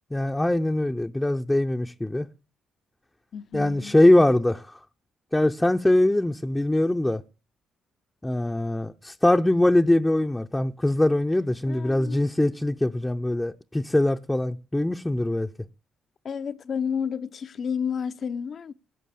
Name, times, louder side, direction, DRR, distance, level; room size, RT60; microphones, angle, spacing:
voice 1, 0.1-2.3 3.5-4.8 5.3-7.2 8.2-15.5, left 1 dB, 10° left, 0.7 m, -22 dB
voice 2, 3.3-4.0 11.7-12.3 16.2-18.7, left 7 dB, 50° left, 0.7 m, -31 dB
17.0 x 7.0 x 8.6 m
cardioid pair, 90°, 0 cm